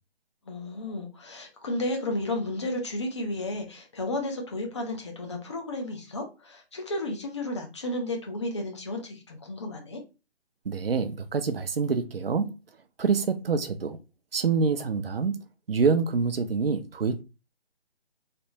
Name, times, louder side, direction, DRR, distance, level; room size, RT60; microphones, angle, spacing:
voice 1, 0.5-10.0, left 1 dB, 25° left, 0.7 m, -33 dB
voice 2, 10.6-12.5 13.0-14.0 14.3-15.4 15.7-17.2, right 5 dB, 60° right, 0.7 m, -26 dB
3.3 x 3.1 x 2.9 m
figure-of-eight pair, 150°, 32 cm